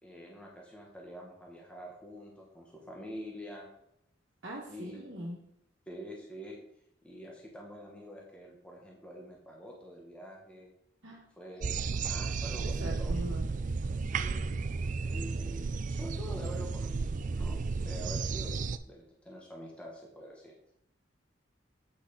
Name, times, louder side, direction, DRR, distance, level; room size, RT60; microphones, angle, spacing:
voice 1, 0.0-3.7 4.7-5.2 5.9-6.6 7.0-10.7 11.4-13.3 14.0-14.5 15.0-20.5, equal, 5° left, -2 dB, 1.3 m, -46 dB
voice 2, 4.4-5.4 11.0-11.2 12.6-13.4, equal, 70° right, -5 dB, 1.6 m, -41 dB
sound 1, 11.6-18.8, right 4 dB, 40° right, 0.4 m, -33 dB
8.2 x 6.1 x 4.0 m, 0.75 s
head